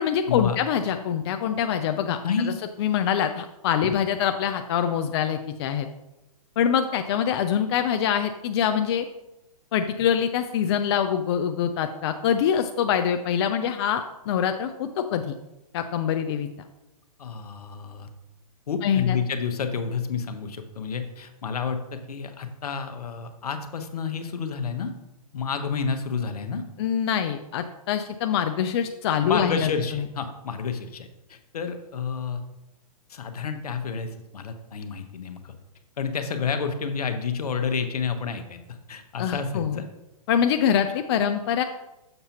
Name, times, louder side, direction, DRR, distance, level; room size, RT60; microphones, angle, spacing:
voice 1, 0.0-2.2 2.8-5.9 6.6-9.0 9.7-15.3 15.7-16.5 18.8-19.2 26.8-30.0 39.2-39.8 40.3-41.6, left 8 dB, 45° left, 7 dB, 0.4 m, -24 dB
voice 2, 2.2-2.5 3.8-3.9 17.2-18.1 18.7-24.9 25.3-26.6 29.2-32.4 33.1-35.5 36.0-39.8, left 6 dB, 75° left, 8 dB, 0.9 m, -30 dB
6.7 x 6.6 x 2.9 m, 0.94 s
hypercardioid pair, 135°, 20 cm